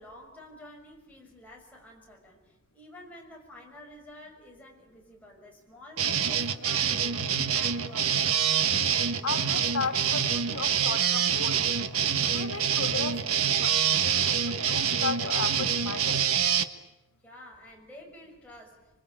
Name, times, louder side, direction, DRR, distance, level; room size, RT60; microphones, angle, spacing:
voice 1, 0.0-8.5 17.2-19.0, left 1 dB, 5° left, 6.5 m, -49 dB
sound 1, 6.0-16.6, right 8 dB, 80° right, 1.4 m, -26 dB
voice 2, 9.2-11.6 12.3-16.2, left 4 dB, 75° left, 2.6 m, -35 dB
26.0 x 24.5 x 9.0 m
head